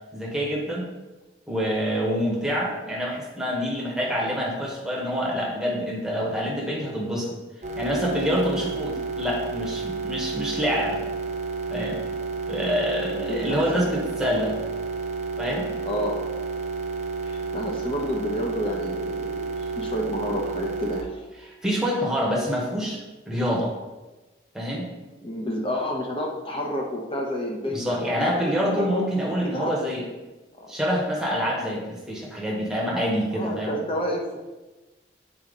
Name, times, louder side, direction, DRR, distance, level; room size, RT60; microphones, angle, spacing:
voice 1, 0.1-0.9 1.5-7.3 7.7-11.0 11.7-12.0 12.5-14.6 15.4-15.7 21.4-23.0 23.3-23.7 24.5-24.9 27.7-30.1 30.7-33.7, equal, 5° right, -3 dB, 1.2 m, -26 dB
sound 1, 7.6-21.0, right 4 dB, 40° right, 0.6 m, -31 dB
voice 2, 13.1-13.9 15.9-16.2 17.2-19.4 19.8-21.2 25.2-29.1 29.4-29.7 30.6-30.7 33.3-34.4, equal, 30° left, 0 dB, 1.0 m, -30 dB
7.9 x 4.3 x 3.9 m, 1.1 s
head